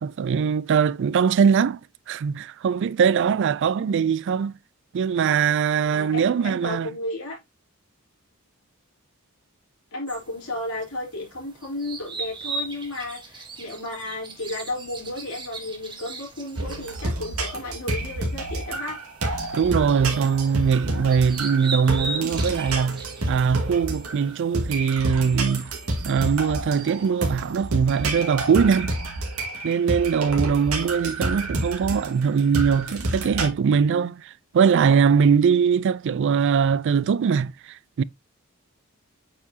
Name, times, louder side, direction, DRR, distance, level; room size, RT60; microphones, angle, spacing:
voice 1, 0.0-1.8 2.1-4.5 4.9-6.9 19.5-25.7 26.1-29.0 29.6-38.0, right 6 dB, 55° right, 0.3 m, -21 dB
voice 2, 5.8-7.4 9.9-19.0 30.6-31.0, left 2 dB, 85° left, 3.6 m, -33 dB
sound 1, 10.1-24.9, right 3 dB, 20° right, 1.3 m, -39 dB
sound 2, 16.6-33.5, right 2 dB, 80° right, 2.2 m, -29 dB
8.4 x 4.6 x 2.7 m
head